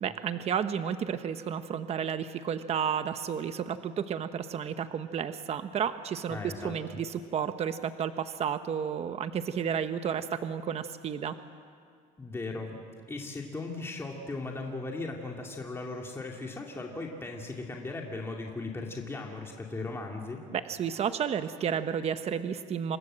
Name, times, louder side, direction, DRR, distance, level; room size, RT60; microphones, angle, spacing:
voice 1, 0.0-11.3 20.5-23.0, right 8 dB, 40° right, 10 dB, 1.0 m, -32 dB
voice 2, 6.3-7.0 12.2-12.8 13.1-20.4, left 3 dB, 15° left, 0 dB, 2.6 m, -37 dB
28.5 x 24.5 x 7.6 m, 2.2 s
cardioid pair, 140°, 16 cm